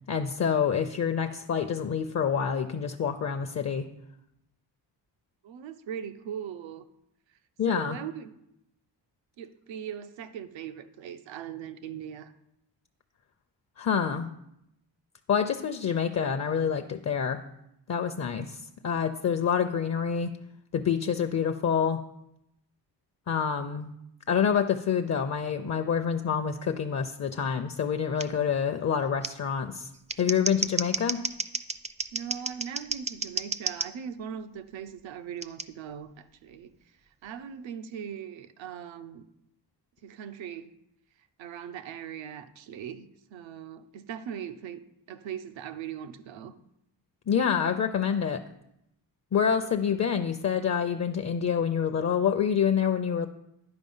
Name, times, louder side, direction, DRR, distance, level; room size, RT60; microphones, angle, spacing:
voice 1, 0.1-3.9 7.6-8.0 13.8-14.3 15.3-17.4 17.9-20.3 20.7-22.0 23.3-23.9 24.3-29.9 30.2-31.2 47.3-48.4 49.3-53.3, left 7 dB, 40° left, 0.6 m, -27 dB
voice 2, 5.4-6.8 7.7-8.4 9.4-12.3 32.1-36.7 37.2-39.2 40.0-40.7 41.4-44.8 45.1-46.5, right 8 dB, 85° right, 0.8 m, -40 dB
Scissors, 28.2-28.3 29.2-29.3 29.9-33.9 35.4-35.6, right 4 dB, 15° right, 0.4 m, -31 dB
10.5 x 4.8 x 5.5 m
cardioid pair, 80°, 44 cm